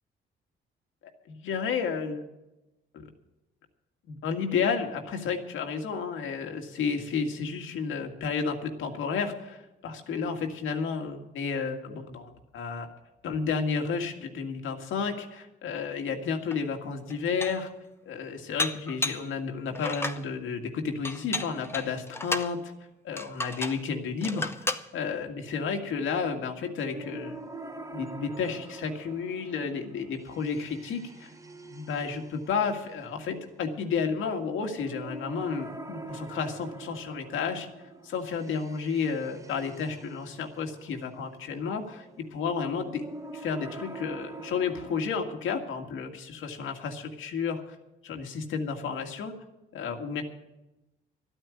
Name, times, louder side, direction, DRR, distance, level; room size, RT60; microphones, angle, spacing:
voice 1, 1.3-2.2 4.1-12.9 13.2-17.7 18.1-22.7 23.0-27.4 27.9-31.3 31.6-37.7 38.0-43.1 43.3-47.8 48.0-49.3 49.7-50.2, left 5 dB, 80° left, 4 dB, 2.0 m, -32 dB
Dishes pots and pans, 16.5-16.6 17.1-17.7 18.6-19.3 19.7-20.2 21.0-22.5 23.2-23.8 24.2-24.9, left 2 dB, 10° left, 0.9 m, -33 dB
sound 1, 26.9-45.0, right 3 dB, 15° right, 1.2 m, -45 dB
12.5 x 9.0 x 9.3 m, 0.98 s
cardioid pair, 90°, 20 cm